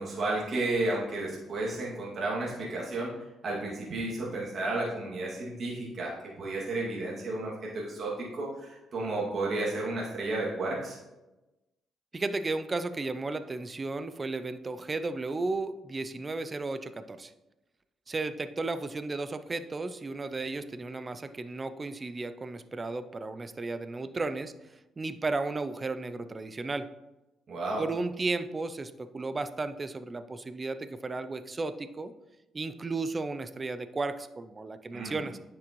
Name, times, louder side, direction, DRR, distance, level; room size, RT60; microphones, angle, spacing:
voice 1, 0.0-3.1 3.4-6.1 6.4-11.0 27.5-27.8 34.9-35.2, right 2 dB, 50° right, -5 dB, 2.3 m, -32 dB
voice 2, 12.1-17.3 18.1-24.5 25.0-26.9 27.8-32.1 32.5-35.4, right 3 dB, 30° right, 11 dB, 0.5 m, -34 dB
9.8 x 6.2 x 3.1 m, 1.0 s
cardioid pair, 90°, 0 cm